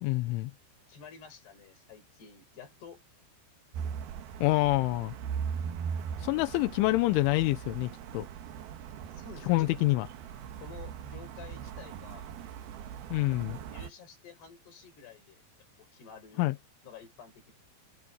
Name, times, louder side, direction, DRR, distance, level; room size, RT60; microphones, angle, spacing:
voice 1, 0.0-0.5 4.4-5.1 6.2-8.2 9.5-10.1 13.1-13.6 16.4-16.5, left 19 dB, 80° left, 3.1 m, -27 dB
voice 2, 0.9-3.0 9.1-10.0 10.6-12.3 13.3-15.4 15.8-16.5 16.8-17.5, left 6 dB, 50° left, 7.3 m, -50 dB
sound 1, 3.7-13.9, right 7 dB, 65° right, 2.6 m, -39 dB
omnidirectional pair, 6.0 m